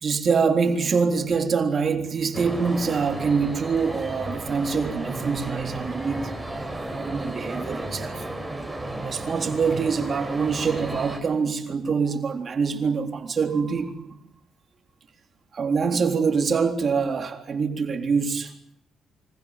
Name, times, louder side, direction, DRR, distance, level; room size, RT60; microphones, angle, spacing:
voice 1, 0.0-6.4 6.9-8.3 9.0-14.2 15.5-18.5, right 5 dB, 45° right, 3.7 m, -25 dB
sound 1, 2.3-11.2, right 2 dB, 5° right, 7.0 m, -33 dB
27.5 x 25.0 x 7.5 m
cardioid pair, 90°, 0 cm